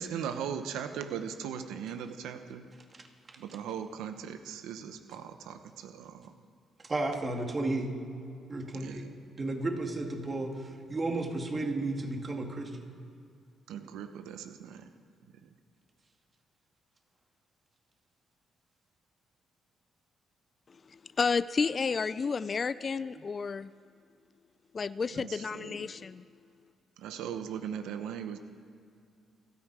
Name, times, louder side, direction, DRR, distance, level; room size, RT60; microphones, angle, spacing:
voice 1, 0.0-2.6 3.4-6.3 8.7-9.1 13.7-14.8 25.1-25.9 27.0-28.4, right 8 dB, 90° right, 8 dB, 0.9 m, -39 dB
voice 2, 6.8-8.0 8.5-9.0 9.4-12.9, right 2 dB, 30° right, 3 dB, 2.4 m, -33 dB
voice 3, 21.2-23.7 24.7-26.2, left 5 dB, 40° left, 16 dB, 0.4 m, -31 dB
29.0 x 9.7 x 4.9 m, 2.4 s
cardioid pair, 90°, 0 cm